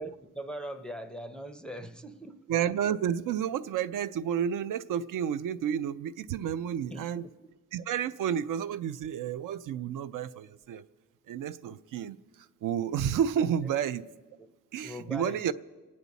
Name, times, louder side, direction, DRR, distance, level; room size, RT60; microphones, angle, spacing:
voice 1, 0.0-2.4 6.9-7.3 14.8-15.4, equal, 5° left, 0.5 m, -40 dB
voice 2, 2.5-7.2 7.7-10.8 11.3-12.2 12.6-14.0 14.7-15.5, right 9 dB, 70° right, 0.5 m, -30 dB
27.5 x 9.6 x 4.1 m
cardioid pair, 160°, 33 cm